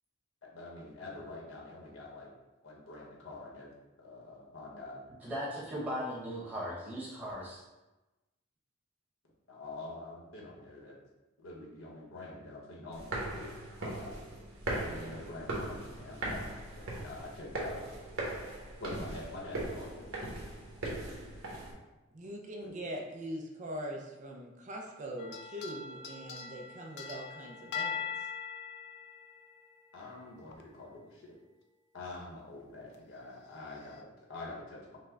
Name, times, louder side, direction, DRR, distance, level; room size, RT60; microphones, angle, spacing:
voice 1, 0.4-2.3 2.6-3.7 4.0-5.0 9.5-11.0 11.4-13.5 13.8-14.2 14.6-17.8 18.8-20.3 29.9-31.3 31.9-35.0, left 2 dB, 75° left, -3 dB, 1.3 m, -46 dB
voice 2, 5.2-7.6, equal, 10° right, -6 dB, 1.2 m, -38 dB
sound 1, 12.9-21.7, right 1 dB, 80° right, 1.1 m, -39 dB
voice 3, 22.1-27.9, equal, 35° right, 0 dB, 0.5 m, -42 dB
sound 2, 25.2-30.0 30.5-30.6 32.2-32.3 32.9-33.0 33.7-34.0, left 6 dB, 55° left, 0.4 m, -41 dB
5.4 x 2.2 x 3.7 m, 1.1 s
head